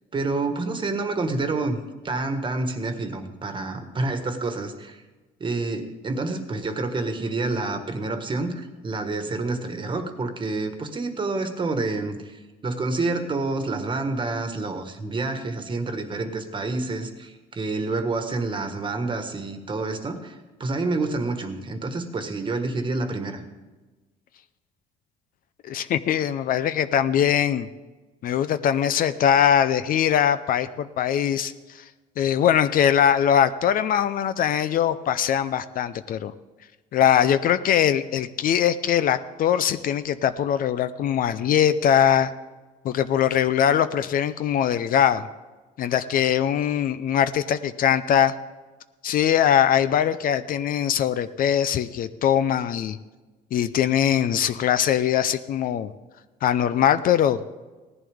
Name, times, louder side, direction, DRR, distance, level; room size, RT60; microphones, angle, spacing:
voice 1, 0.1-1.8 2.0-5.0 5.4-23.4, right 3 dB, 30° right, 7 dB, 1.5 m, -28 dB
voice 2, 25.6-27.7 28.2-31.8 32.2-36.3 36.9-42.3 42.8-45.3 45.8-48.3 49.0-53.0 53.5-55.9 56.4-57.4, left 9 dB, 55° left, 13 dB, 0.6 m, -21 dB
17.5 x 11.0 x 3.6 m, 1.2 s
cardioid pair, 110°, 17 cm